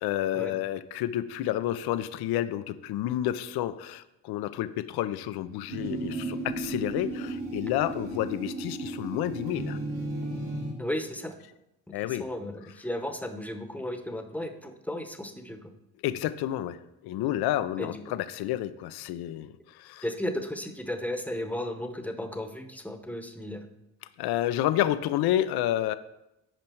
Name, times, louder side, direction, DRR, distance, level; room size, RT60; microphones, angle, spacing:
voice 1, 0.0-9.8 11.9-12.3 16.0-20.0 24.2-26.0, left 13 dB, 75° left, 13 dB, 0.5 m, -30 dB
sound 1, 5.7-10.7, right 2 dB, 80° right, 2.3 m, -34 dB
voice 2, 10.8-11.4 11.9-15.7 17.8-18.0 20.0-23.7, left 1 dB, 5° left, 6 dB, 0.9 m, -34 dB
9.0 x 5.2 x 4.5 m, 0.89 s
cardioid pair, 90°, 38 cm